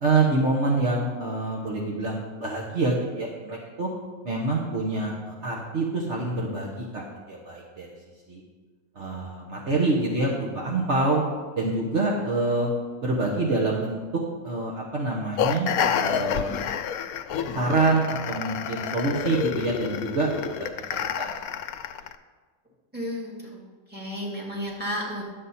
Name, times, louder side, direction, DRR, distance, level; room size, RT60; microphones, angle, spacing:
voice 1, 0.0-3.9 4.2-7.9 8.3-8.4 8.9-11.2 11.6-12.7 13.0-16.6 17.5-21.6, right 3 dB, 55° right, -3 dB, 1.4 m, -26 dB
sound 1, 15.4-22.1, left 8 dB, 85° left, 1.0 m, -29 dB
voice 2, 22.9-23.6 23.9-25.2, equal, 5° right, -5 dB, 2.2 m, -32 dB
11.0 x 7.8 x 4.2 m, 1.4 s
omnidirectional pair, 1.5 m